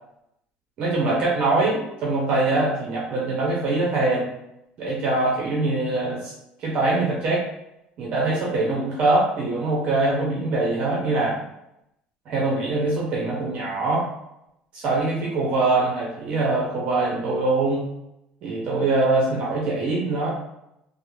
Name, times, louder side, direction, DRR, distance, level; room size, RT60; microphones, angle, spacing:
voice 1, 0.8-4.3 4.8-6.3 6.6-7.4 8.0-11.4 12.3-14.1 14.7-17.9 18.4-20.3, right 2 dB, 40° right, -4 dB, 0.7 m, -23 dB
2.6 x 2.0 x 2.9 m, 0.83 s
cardioid pair, 175°, 3 cm